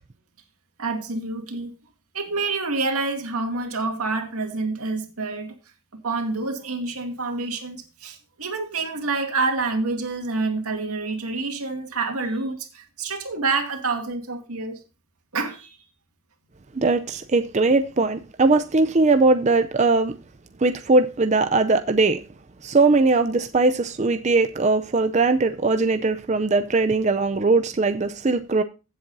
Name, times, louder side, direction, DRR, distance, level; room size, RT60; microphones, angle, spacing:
voice 1, 0.8-1.7 2.1-5.5 5.9-14.8 15.3-15.8, right 3 dB, 90° right, 2.3 m, -27 dB
voice 2, 16.7-20.1 20.6-22.3 22.6-28.6, right 3 dB, 30° right, 0.5 m, -20 dB
15.5 x 7.6 x 2.7 m
head